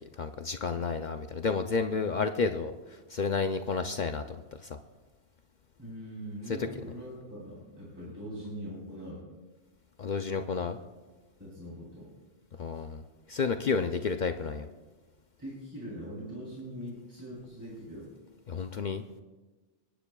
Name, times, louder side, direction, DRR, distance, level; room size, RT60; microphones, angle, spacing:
voice 1, 0.2-4.8 6.5-6.7 10.0-10.8 12.6-14.7 18.5-19.0, left 5 dB, 55° left, 7 dB, 0.5 m, -31 dB
voice 2, 5.8-9.2 11.4-12.1 15.4-18.1, equal, 15° right, -7 dB, 3.6 m, -42 dB
26.5 x 10.0 x 2.3 m, 1.2 s
omnidirectional pair, 1.2 m